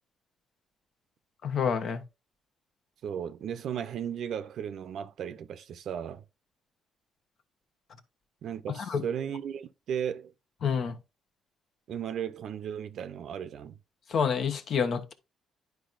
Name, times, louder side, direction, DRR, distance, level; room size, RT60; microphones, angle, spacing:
voice 1, 1.4-2.0 8.9-9.0 10.6-10.9 14.1-15.1, left 6 dB, 60° left, 1.0 m, -28 dB
voice 2, 3.0-6.2 8.4-10.3 11.9-13.8, right 8 dB, 70° right, 0.6 m, -35 dB
10.5 x 4.7 x 2.5 m
cardioid pair, 90°, 0 cm